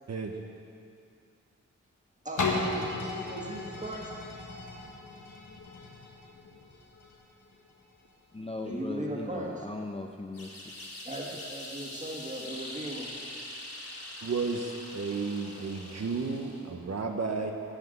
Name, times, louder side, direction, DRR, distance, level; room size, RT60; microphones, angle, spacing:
voice 1, 2.2-4.1 8.6-9.6 11.1-13.1, right 1 dB, 25° right, -2 dB, 1.9 m, -38 dB
sound 1, 2.4-8.1 8.7-8.8, left 3 dB, 80° left, 1.3 m, -36 dB
voice 2, 8.3-10.5, left 2 dB, 20° left, 3 dB, 0.5 m, -38 dB
sound 2, 10.3-16.7, left 1 dB, 50° left, 2.5 m, -43 dB
voice 3, 14.2-17.5, right 4 dB, 55° right, 2 dB, 0.8 m, -32 dB
11.5 x 5.7 x 7.9 m, 2.5 s
wide cardioid pair, 95°, 30 cm